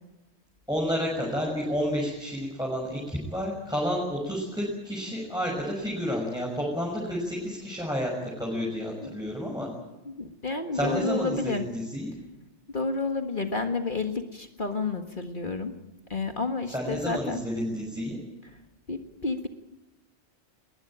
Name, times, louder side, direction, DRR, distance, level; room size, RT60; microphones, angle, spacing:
voice 1, 0.7-8.1 8.4-9.7 10.7-12.1 16.7-18.2, equal, 5° right, -3 dB, 6.3 m, -30 dB
voice 2, 10.1-11.7 12.7-15.7 16.1-17.4 18.9-19.5, left 3 dB, 45° left, 5 dB, 1.8 m, -30 dB
21.5 x 20.5 x 8.9 m, 1.0 s
omnidirectional pair, 1.2 m